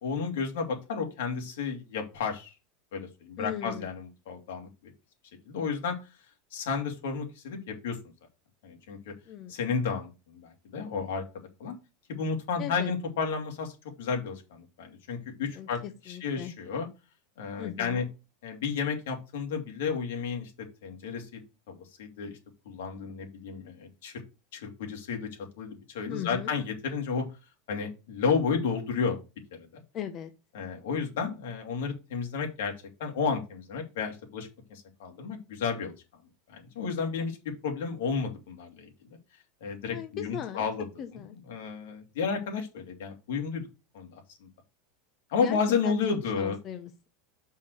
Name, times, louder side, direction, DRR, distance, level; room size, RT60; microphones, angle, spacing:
voice 1, 0.0-2.5 2.9-4.9 5.5-6.0 6.5-8.0 8.6-9.1 9.5-11.2 11.6-11.7 12.1-16.9 17.4-18.1 18.4-20.5 20.8-21.4 21.7-22.4 22.6-24.2 24.5-25.3 25.6-27.3 27.7-29.2 29.7-29.8 30.5-32.7 33.0-35.9 36.5-37.4 37.6-39.2 39.6-40.9 41.5-43.6 43.9-44.5 45.3-46.6, left 5 dB, 80° left, 2 dB, 2.8 m, -32 dB
voice 2, 3.4-3.9 9.3-9.5 12.6-12.9 15.5-16.5 17.6-18.0 26.1-26.5 29.9-30.3 39.9-40.6 41.0-41.4 45.4-45.6 45.8-47.1, left 9 dB, 30° left, 7 dB, 0.7 m, -38 dB
5.6 x 4.9 x 6.4 m, 0.28 s
supercardioid pair, 165°, 0 cm